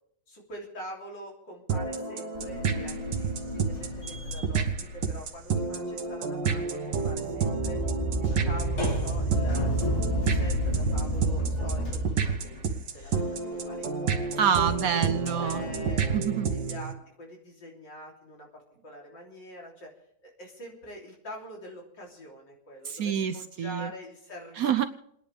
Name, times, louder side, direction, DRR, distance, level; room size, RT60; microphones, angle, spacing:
voice 1, 0.3-7.8 8.2-14.1 14.7-14.9 15.3-19.9 20.2-24.7, equal, 80° left, -2 dB, 4.0 m, -45 dB
sound 1, 1.7-16.9, right 5 dB, 85° right, 1.9 m, -30 dB
sound 2, 2.3-6.1 6.4-16.0, left 1 dB, 40° left, 2.5 m, -37 dB
sound 3, 7.3-12.1, right 1 dB, 20° left, 5.5 m, -30 dB
voice 2, 14.4-15.6 16.1-16.5 22.9-23.9 24.6-24.8, right 8 dB, 65° right, 10 dB, 1.0 m, -27 dB
29.5 x 10.0 x 3.5 m, 0.71 s
omnidirectional pair, 2.0 m